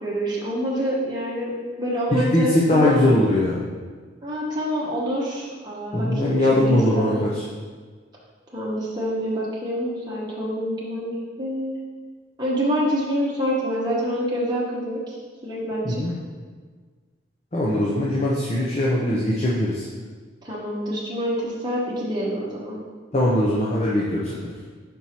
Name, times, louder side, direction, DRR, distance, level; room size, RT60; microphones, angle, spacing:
voice 1, 0.0-3.2 4.2-7.2 8.5-11.8 12.4-16.0 20.4-22.8, equal, 20° right, -6 dB, 1.0 m, -27 dB
voice 2, 2.1-3.6 5.9-7.4 15.8-16.1 17.5-19.8 23.1-24.5, left 1 dB, 30° left, -4 dB, 0.6 m, -21 dB
5.3 x 4.5 x 4.3 m, 1.5 s
head